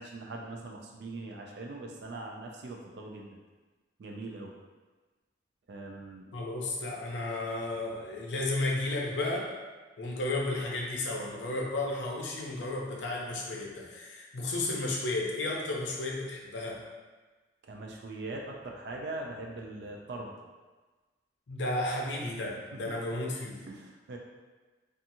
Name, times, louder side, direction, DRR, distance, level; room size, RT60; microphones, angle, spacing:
voice 1, 0.0-3.4 4.0-4.5 5.7-6.3 17.6-20.4 23.7-24.2, right 2 dB, 60° right, 0 dB, 0.3 m, -41 dB
voice 2, 6.3-9.6 10.0-16.9 21.5-23.6, left 2 dB, 70° left, -1 dB, 0.5 m, -33 dB
2.7 x 2.4 x 2.6 m, 1.3 s
head